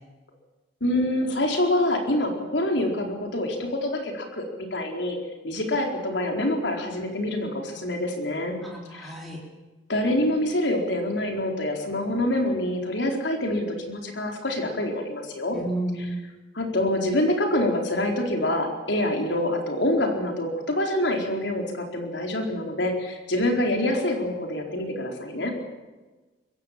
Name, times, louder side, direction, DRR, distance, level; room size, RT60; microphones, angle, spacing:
voice 1, 0.8-4.5 4.7-5.2 5.4-8.6 8.9-9.1 9.9-15.6 16.5-25.5, left 1 dB, 75° left, 3 dB, 4.3 m, -26 dB
voice 2, 8.6-9.4 15.5-16.1, right 1 dB, ahead, -2 dB, 3.9 m, -31 dB
22.5 x 16.5 x 7.6 m, 1.2 s
head